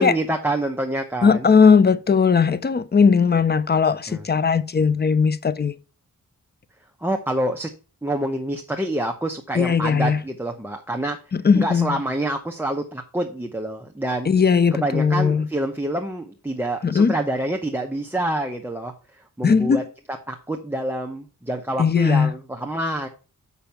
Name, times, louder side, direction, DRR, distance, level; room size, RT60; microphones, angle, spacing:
voice 1, 0.0-1.4 4.1-4.2 7.0-7.7 8.0-11.2 11.5-14.3 14.7-19.8 20.1-23.1, right 1 dB, 5° right, 0.9 m, -27 dB
voice 2, 1.2-5.7 9.5-10.2 11.3-12.0 14.3-15.5 16.8-17.1 19.4-19.8 21.8-22.3, left 5 dB, 30° left, 0.6 m, -18 dB
7.0 x 5.8 x 5.7 m
wide cardioid pair, 100°, 33 cm